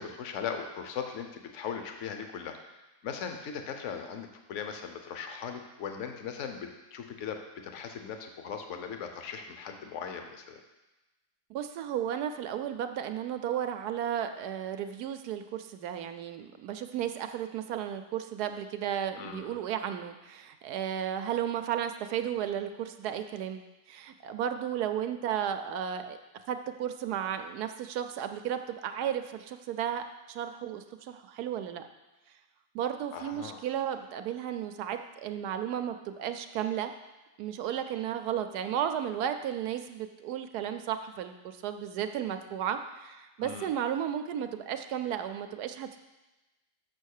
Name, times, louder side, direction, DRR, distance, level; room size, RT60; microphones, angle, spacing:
voice 1, 0.0-2.6 3.0-10.6 19.2-19.6 33.1-33.7 43.4-43.7, left 7 dB, 55° left, 5 dB, 1.0 m, -39 dB
voice 2, 11.5-23.6 23.9-26.2 26.5-31.8 32.7-36.9 37.4-46.0, right 9 dB, 70° right, 8 dB, 1.1 m, -34 dB
6.8 x 6.3 x 6.5 m, 1.1 s
omnidirectional pair, 1.9 m